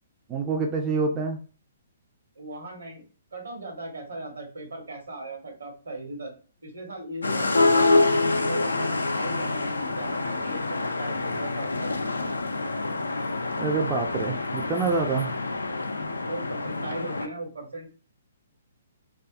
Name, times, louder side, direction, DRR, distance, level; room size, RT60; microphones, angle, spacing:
voice 1, 0.3-1.4 13.6-15.4, right 4 dB, 20° right, 2 dB, 0.4 m, -26 dB
voice 2, 2.4-3.1 3.3-6.3 6.6-7.8 8.3-12.3 16.2-17.9, right 2 dB, 75° right, 1 dB, 1.2 m, -38 dB
sound 1, 7.2-17.3, left 3 dB, 80° left, 0.3 m, -26 dB
2.6 x 2.3 x 2.4 m, 0.39 s
figure-of-eight pair, 125°, 0 cm